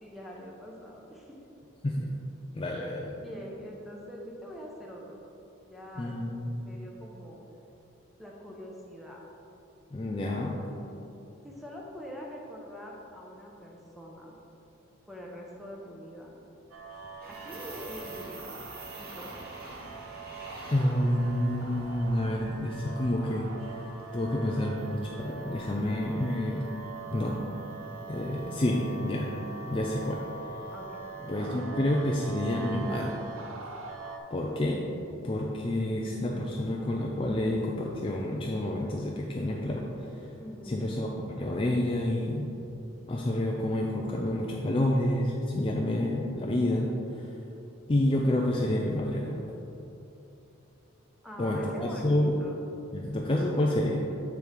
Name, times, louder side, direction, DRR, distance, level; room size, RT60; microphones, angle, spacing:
voice 1, 0.0-1.4 3.2-5.2 5.7-6.2 6.5-7.4 8.2-9.2 11.4-14.3 15.1-16.3 17.3-18.5 18.9-19.5 30.7-31.0 40.4-40.9 51.2-52.6, equal, ahead, -3 dB, 0.9 m, -44 dB
voice 2, 2.5-3.1 6.0-6.5 9.9-10.6 20.7-26.7 27.1-27.4 28.1-29.3 29.7-30.2 31.3-33.2 34.3-34.8 35.2-40.3 40.7-42.5 43.1-47.3 47.9-49.4 51.4-52.3 52.9-54.0, left 1 dB, 25° left, -1 dB, 0.4 m, -29 dB
sound 1, 16.7-34.2, right 4 dB, 75° right, 0.6 m, -43 dB
sound 2, 17.2-31.2, right 2 dB, 45° right, 1.0 m, -49 dB
6.9 x 4.7 x 5.1 m, 2.9 s
head